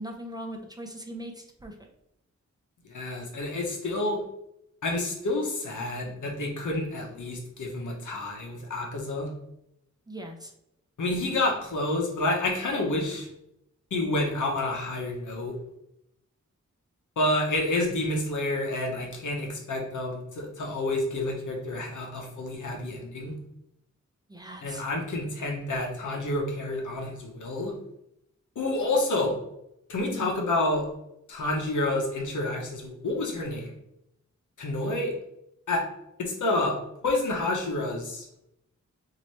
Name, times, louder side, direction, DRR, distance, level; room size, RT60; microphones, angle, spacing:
voice 1, 0.0-1.9 10.1-10.5 24.3-24.9 30.1-30.3, right 1 dB, 15° right, 2 dB, 0.5 m, -40 dB
voice 2, 2.9-4.2 4.8-9.3 11.0-13.3 13.9-15.6 17.2-23.4 24.6-27.7 28.6-29.3 29.9-30.8 31.3-33.7 34.6-35.1 35.7-35.8 36.2-36.8 37.0-38.3, left 2 dB, 85° left, 0 dB, 1.0 m, -29 dB
3.1 x 2.9 x 4.2 m, 0.82 s
wide cardioid pair, 110°, 29 cm